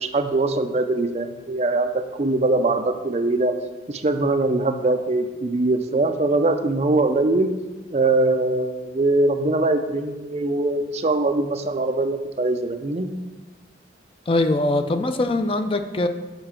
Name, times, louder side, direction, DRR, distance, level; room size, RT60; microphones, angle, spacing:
voice 1, 0.0-3.5 3.9-7.5 7.9-13.1, right 2 dB, 35° right, 7 dB, 0.4 m, -22 dB
voice 2, 14.3-16.1, left 2 dB, 30° left, 8 dB, 0.4 m, -22 dB
6.8 x 5.6 x 5.7 m, 1.2 s
head